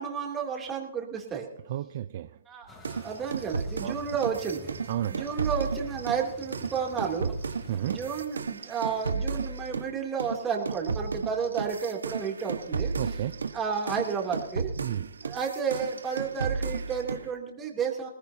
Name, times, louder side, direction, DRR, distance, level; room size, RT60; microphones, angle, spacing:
voice 1, 0.0-1.5 2.5-2.7 3.0-4.7 5.1-7.3 7.8-12.9 13.5-14.7 15.2-18.1, right 6 dB, 15° right, 0 dB, 3.1 m, -31 dB
voice 2, 1.7-2.3 3.8-3.9 4.9-5.3 7.7-8.0 13.0-13.4 14.8-15.1, right 11 dB, 45° right, 11 dB, 0.6 m, -32 dB
sound 1, 2.7-8.2, left 2 dB, 15° left, 3.5 m, -49 dB
sound 2, 2.8-9.9 10.2-17.3, right 4 dB, 85° right, 1.3 m, -33 dB
21.0 x 19.0 x 2.9 m, 0.78 s
hypercardioid pair, 145°, 0 cm